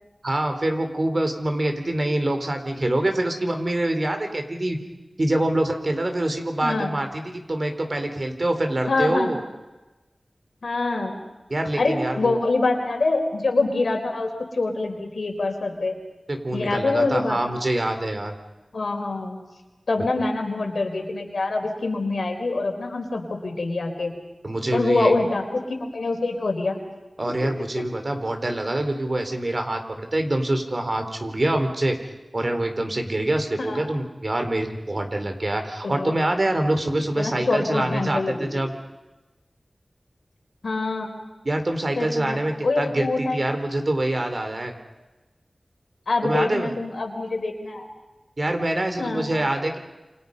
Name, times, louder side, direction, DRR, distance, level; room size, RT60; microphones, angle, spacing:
voice 1, 0.2-4.8 5.2-9.4 11.5-12.4 16.3-18.3 24.4-25.1 27.2-32.0 32.3-38.7 41.4-44.7 46.2-46.7 48.4-49.8, right 1 dB, 50° right, 5 dB, 4.1 m, -25 dB
voice 2, 6.6-6.9 8.9-9.3 10.6-11.2 11.8-16.0 16.5-17.4 18.7-19.4 19.9-24.1 24.7-26.8 27.3-27.4 33.7-33.8 35.8-36.1 37.2-38.5 40.6-41.1 42.0-43.4 46.1-47.9 48.8-49.3, left 3 dB, 90° left, 3 dB, 4.4 m, -25 dB
28.5 x 27.0 x 5.6 m, 1.1 s
wide cardioid pair, 55°, 0 cm